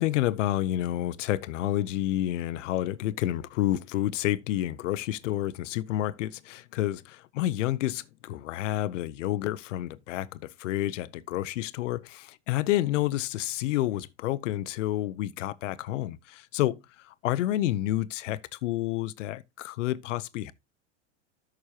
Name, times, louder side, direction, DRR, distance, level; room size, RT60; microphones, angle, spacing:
voice 1, 0.0-20.5, left 14 dB, 80° left, 0.9 m, -29 dB
13.0 x 6.4 x 2.9 m
supercardioid pair, 125°, 36 cm